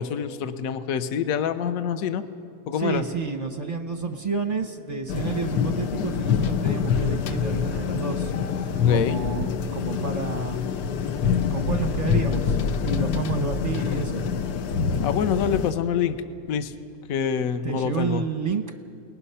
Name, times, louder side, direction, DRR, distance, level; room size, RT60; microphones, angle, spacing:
voice 1, 0.0-2.2 2.7-3.0 8.8-9.2 13.1-13.2 15.0-16.2 16.5-16.7 17.1-18.2, left 8 dB, 60° left, 10 dB, 1.2 m, -26 dB
voice 2, 2.7-8.3 8.9-10.6 11.5-14.3 17.6-18.6, right 5 dB, 35° right, 6 dB, 0.6 m, -30 dB
sound 1, 5.1-15.7, left 6 dB, 85° left, 1.4 m, -25 dB
30.0 x 19.5 x 5.6 m, 2.3 s
omnidirectional pair, 1.8 m